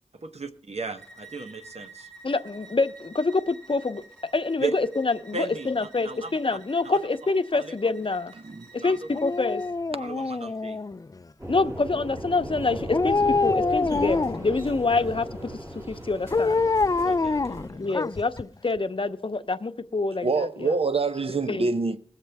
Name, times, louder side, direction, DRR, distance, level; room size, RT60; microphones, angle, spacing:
voice 1, 0.2-2.1 4.6-4.7 5.3-6.4 6.8-7.0 7.6-7.7 8.8-9.0 9.9-10.8 14.6-14.7 17.0-17.6, right 4 dB, 80° right, 0.9 m, -35 dB
Bowed string instrument, 1.0-9.8, right 3 dB, 5° left, 2.4 m, -50 dB
voice 2, 2.2-4.0 4.3-8.3 8.7-9.6 11.5-15.6 15.9-16.7 17.8-20.7 21.5-21.7, left 3 dB, 55° left, 0.7 m, -26 dB
voice 3, 8.4-8.7 20.2-22.0, right 4 dB, 65° right, 0.6 m, -25 dB
Dog, 9.1-11.2 12.9-14.6 16.3-18.4 18.8-18.9, left 3 dB, 35° left, 0.3 m, -25 dB
sound 1, 11.4-17.7, equal, 25° right, 3.6 m, -36 dB
21.5 x 7.4 x 3.4 m
wide cardioid pair, 40°, 11 cm